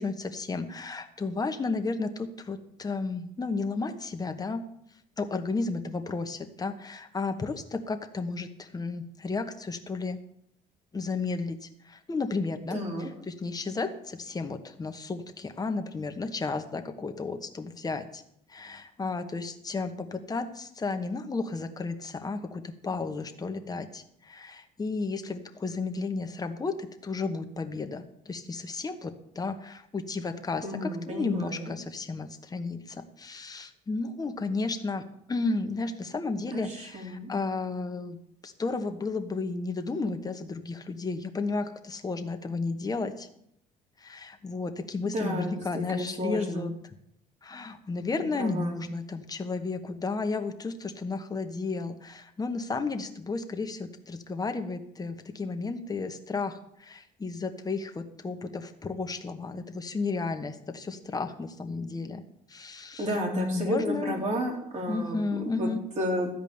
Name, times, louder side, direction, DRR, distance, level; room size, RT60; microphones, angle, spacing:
voice 1, 0.0-4.6 5.2-10.2 10.9-18.2 18.5-38.2 38.4-43.3 44.0-46.9 47.4-62.2 62.5-64.3 64.9-65.8, left 3 dB, 20° left, 6 dB, 1.2 m, -33 dB
voice 2, 12.7-13.1 30.6-31.7 36.5-36.6 36.9-37.3 45.1-46.7 48.4-48.8 63.0-65.7 66.0-66.3, equal, 45° right, -1 dB, 3.8 m, -32 dB
13.0 x 5.1 x 8.7 m, 0.73 s
cardioid pair, 110°, 17 cm